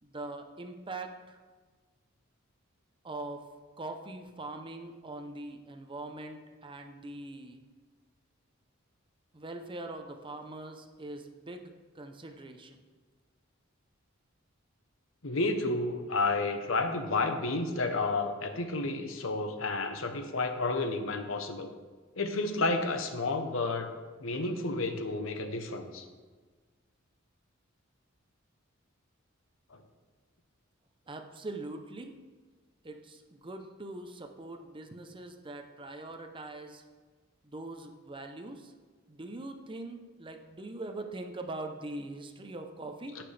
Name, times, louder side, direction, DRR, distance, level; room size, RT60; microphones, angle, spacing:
voice 1, 0.0-1.4 3.0-3.5 3.8-7.6 9.3-12.8 31.1-32.2 32.8-36.8 37.4-38.7 39.1-43.2, right 2 dB, 25° right, 5 dB, 0.7 m, -42 dB
voice 2, 15.2-21.7 22.2-23.9 24.2-26.0 29.7-29.8, left 3 dB, 70° left, 7 dB, 0.9 m, -31 dB
16.0 x 5.9 x 3.3 m, 1.4 s
head